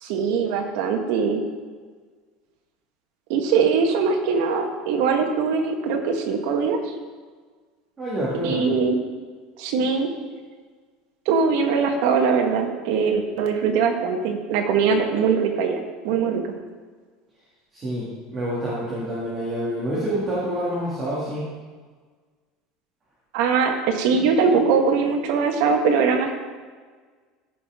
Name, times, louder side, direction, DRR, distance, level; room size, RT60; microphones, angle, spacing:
voice 1, 0.0-1.4 3.3-6.8 8.4-9.0 9.6-10.1 11.3-16.4 23.3-26.3, right 5 dB, 65° right, 3 dB, 1.3 m, -21 dB
voice 2, 8.0-8.7 17.7-21.5, right 1 dB, 20° right, -7 dB, 2.0 m, -27 dB
14.0 x 5.7 x 3.6 m, 1.5 s
cardioid pair, 165°, 0 cm